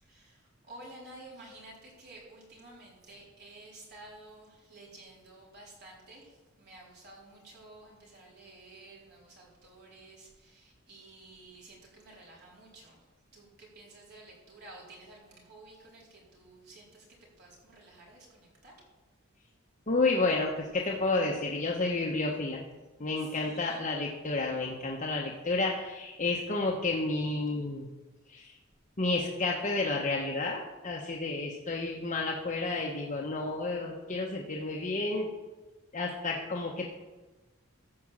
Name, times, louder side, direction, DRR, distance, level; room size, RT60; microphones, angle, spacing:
voice 1, 0.0-13.0 13.3-18.8 23.2-23.9, right 2 dB, 55° right, -4 dB, 4.2 m, -52 dB
voice 2, 19.9-22.6 23.0-27.9 28.3-28.5 29.0-35.3 35.9-36.9, left 3 dB, 40° left, -2 dB, 1.1 m, -31 dB
14.5 x 5.3 x 7.4 m, 1.2 s
head